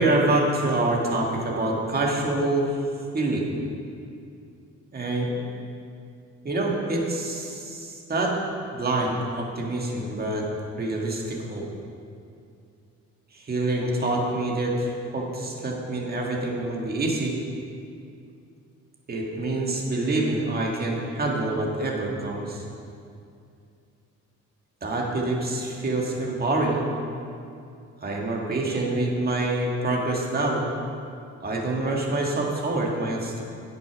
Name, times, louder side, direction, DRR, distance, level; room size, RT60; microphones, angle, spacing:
voice 1, 0.0-2.7 3.1-3.5 4.9-5.4 6.4-8.4 8.7-10.5 10.8-11.7 13.3-17.3 19.1-22.7 24.8-26.9 28.0-30.6 31.4-33.4, right 2 dB, 30° right, -1 dB, 1.7 m, -26 dB
9.0 x 6.2 x 6.1 m, 2.5 s
cardioid pair, 90°, 30 cm